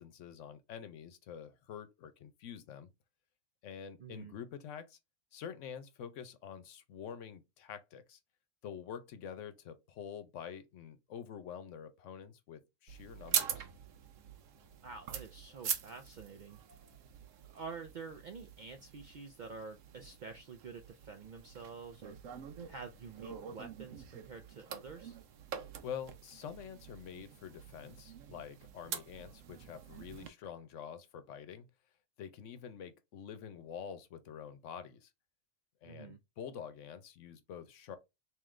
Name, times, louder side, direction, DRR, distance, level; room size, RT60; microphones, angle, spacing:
voice 1, 0.0-2.9 3.6-5.0 5.3-8.2 8.6-13.7 25.8-31.7 32.2-35.1 35.8-38.0, left 8 dB, 75° left, 1.0 m, -47 dB
voice 2, 4.0-4.3 14.8-16.6 17.5-22.2 22.7-25.2 35.8-36.2, right 5 dB, 60° right, 0.5 m, -48 dB
sound 1, 12.9-30.3, right 8 dB, 90° right, 1.1 m, -44 dB
3.7 x 3.0 x 3.1 m
omnidirectional pair, 1.3 m